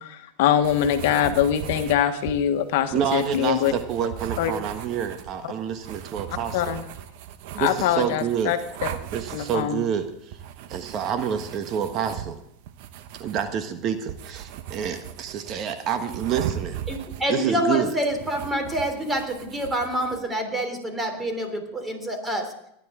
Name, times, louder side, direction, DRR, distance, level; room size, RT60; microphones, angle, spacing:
voice 1, 0.0-3.7 4.4-4.5 5.4-5.5 6.5-6.8 7.6-8.6 9.3-9.8, left 10 dB, 65° left, 8 dB, 1.3 m, -23 dB
sound 1, 0.6-20.2, right 10 dB, 65° right, 1.1 m, -38 dB
voice 2, 2.9-6.7 7.5-8.6 9.1-10.4 10.7-12.4 13.2-16.8 17.3-17.9, right 8 dB, 45° right, 8 dB, 1.3 m, -28 dB
voice 3, 16.9-22.5, right 1 dB, 15° right, 6 dB, 3.3 m, -27 dB
18.5 x 10.5 x 3.8 m, 0.76 s
hypercardioid pair, 105°, 0 cm